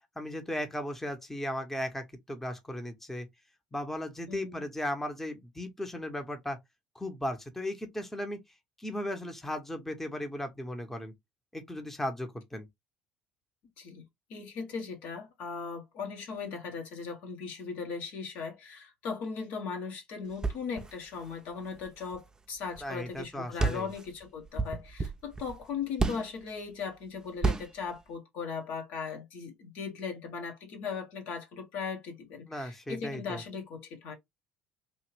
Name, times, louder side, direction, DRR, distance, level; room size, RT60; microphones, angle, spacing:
voice 1, 0.2-3.3 3.7-6.6 6.9-8.4 8.8-11.1 11.5-12.7 22.8-23.9 32.5-33.4, left 1 dB, 10° left, 0.9 m, -36 dB
voice 2, 4.3-4.6 13.8-14.0 14.3-34.1, left 5 dB, 60° left, 1.2 m, -38 dB
sound 1, 20.3-22.9 23.1-23.3 23.6-26.4 27.4-27.9, right 3 dB, 20° right, 0.6 m, -33 dB
3.0 x 2.7 x 3.2 m
figure-of-eight pair, 60°, 4 cm